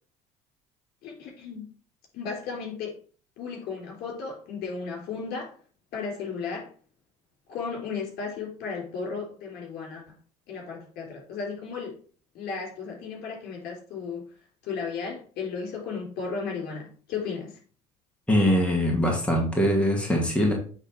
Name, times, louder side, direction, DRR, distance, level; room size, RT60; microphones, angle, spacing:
voice 1, 1.0-1.7 2.1-2.9 3.4-5.5 5.9-6.7 7.5-10.0 10.5-12.0 12.4-14.2 14.6-17.5, left 5 dB, 65° left, 0 dB, 3.5 m, -34 dB
voice 2, 18.3-20.5, equal, 5° left, 0 dB, 2.3 m, -22 dB
8.1 x 3.6 x 4.6 m, 0.42 s
supercardioid pair, 80°, 18 cm